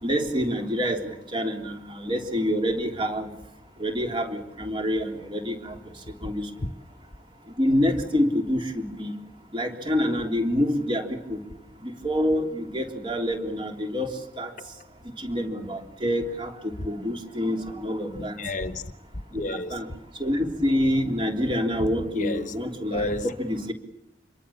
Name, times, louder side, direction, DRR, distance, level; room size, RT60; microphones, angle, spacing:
voice 1, 0.0-3.3 3.8-5.8 6.2-6.5 7.6-9.1 9.5-11.4 11.8-14.1 14.4-14.5 15.2-18.4 19.3-19.9 20.2-23.7, equal, 30° right, 3.6 m, -27 dB
voice 2, 18.2-18.9 19.3-19.8 22.1-22.5 22.9-23.3, left 2 dB, 45° left, 1.1 m, -31 dB
27.5 x 23.0 x 7.2 m
head